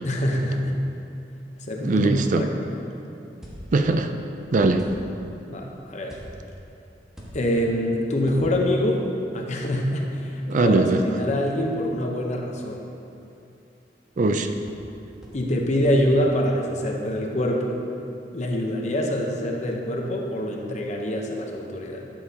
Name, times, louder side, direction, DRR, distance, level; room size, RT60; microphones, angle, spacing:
voice 1, 0.0-0.8 1.6-2.7 5.4-6.2 7.3-9.0 9.3-12.9 15.3-17.7 18.3-22.0, left 1 dB, 40° left, 1 dB, 0.9 m, -25 dB
voice 2, 1.8-2.5 3.7-4.1 4.5-4.9 10.5-11.0 14.2-14.5, right 3 dB, 45° right, 7 dB, 0.4 m, -20 dB
sound 1, 3.4-4.1 4.8-5.4 6.1-6.6 7.1-7.8 8.2-8.9 10.5-10.6 11.5-11.6 14.7-14.9 15.2-15.6 15.8-16.1, equal, 5° right, 1.5 m, -43 dB
12.0 x 7.2 x 2.9 m, 2.8 s
head